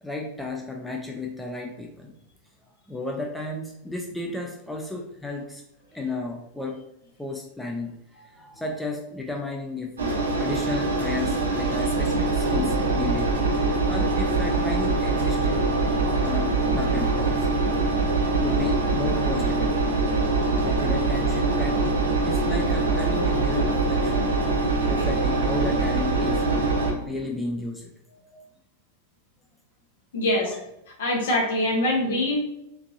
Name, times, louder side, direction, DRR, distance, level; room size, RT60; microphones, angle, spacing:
voice 1, 0.0-2.1 2.9-5.6 5.9-6.8 7.2-7.9 8.4-13.3 13.9-15.6 16.2-17.5 18.4-20.0 20.6-24.4 24.9-26.7 27.0-27.9 28.3-28.4 30.4-30.6, left 2 dB, 5° left, 0 dB, 0.5 m, -33 dB
Engine, 10.0-26.9, right 3 dB, 70° right, 0.8 m, -23 dB
voice 2, 30.1-30.5 31.0-32.4, left 1 dB, 60° left, 0 dB, 1.2 m, -23 dB
4.4 x 2.7 x 2.7 m, 0.81 s
figure-of-eight pair, 90°, 0 cm